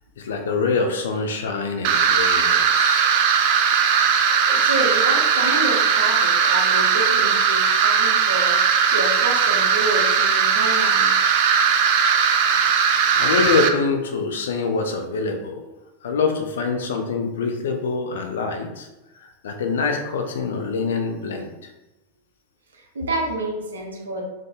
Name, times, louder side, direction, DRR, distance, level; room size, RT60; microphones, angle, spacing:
voice 1, 0.2-3.1 13.2-15.6 16.0-18.9 19.2-21.7, left 4 dB, 60° left, 5 dB, 0.6 m, -25 dB
sound 1, 1.8-13.7, right 6 dB, 45° right, 0.5 m, -18 dB
voice 2, 4.5-11.1 13.1-13.2 22.7-24.2, right 2 dB, 70° right, 1 dB, 1.0 m, -29 dB
4.5 x 3.0 x 3.7 m, 1.0 s
figure-of-eight pair, 90°, 0 cm